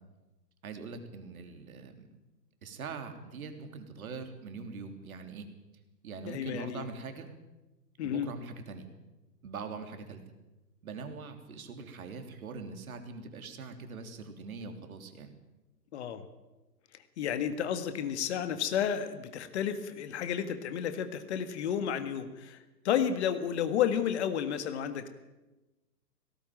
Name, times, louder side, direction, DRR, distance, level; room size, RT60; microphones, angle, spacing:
voice 1, 0.6-2.1 2.6-5.5 6.0-7.3 8.0-8.9 9.4-10.2 10.8-15.3, right 4 dB, 55° right, 6 dB, 3.4 m, -42 dB
voice 2, 6.3-6.9 8.0-8.3 15.9-16.2 17.2-22.6 22.9-25.1, left 8 dB, 40° left, 10 dB, 1.8 m, -31 dB
18.0 x 17.5 x 9.0 m, 1.1 s
figure-of-eight pair, 120°, 50 cm